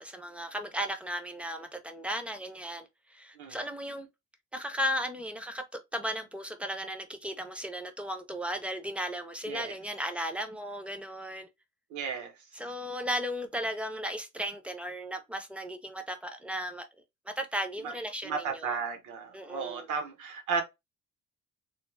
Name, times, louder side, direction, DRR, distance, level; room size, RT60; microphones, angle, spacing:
voice 1, 0.0-4.1 4.5-11.5 12.6-16.9 17.3-18.8 19.3-19.9, equal, 5° right, 0.4 m, -35 dB
voice 2, 11.9-12.3 17.8-17.9 18.2-20.6, right 5 dB, 75° right, 1.1 m, -34 dB
3.2 x 2.3 x 3.1 m
cardioid pair, 160°, 30 cm